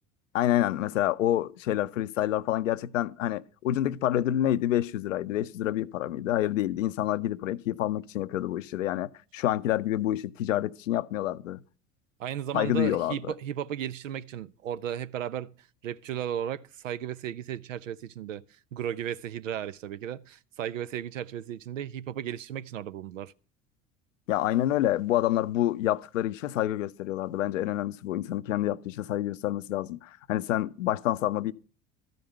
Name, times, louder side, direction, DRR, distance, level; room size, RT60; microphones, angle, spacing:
voice 1, 0.3-11.6 12.5-13.3 24.3-31.5, left 13 dB, 80° left, 0.6 m, -28 dB
voice 2, 12.2-15.5 15.8-18.4 18.7-23.3, right 10 dB, 80° right, 0.6 m, -35 dB
13.0 x 5.2 x 8.9 m
figure-of-eight pair, 70°, 38 cm